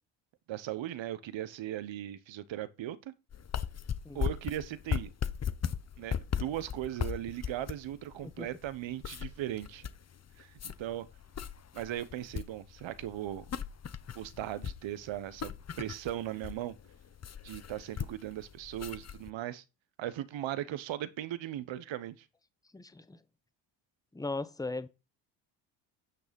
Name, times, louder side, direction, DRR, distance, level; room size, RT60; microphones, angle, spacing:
voice 1, 0.5-3.1 4.1-5.1 6.0-9.9 10.4-11.1 11.7-13.4 14.1-16.8 17.4-19.6 20.0-22.2, right 12 dB, 65° right, 1.3 m, -38 dB
sound 1, 3.3-19.3, left 8 dB, 30° left, 1.0 m, -38 dB
voice 2, 22.7-23.2 24.1-24.9, left 3 dB, 5° left, 1.0 m, -37 dB
9.8 x 6.2 x 5.3 m
supercardioid pair, 70°, 49 cm